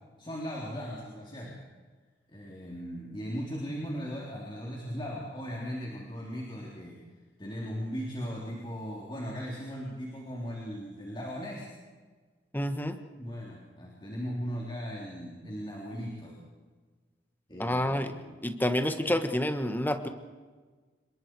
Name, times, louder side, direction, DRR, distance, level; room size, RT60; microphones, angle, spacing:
voice 1, 0.2-1.6 2.3-7.0 7.4-11.7 13.1-16.4 17.5-18.4, equal, 25° left, -3 dB, 3.7 m, -38 dB
voice 2, 12.5-12.9 17.6-18.1 18.4-20.1, left 1 dB, 10° left, 8 dB, 1.4 m, -28 dB
27.5 x 22.5 x 4.8 m, 1.4 s
head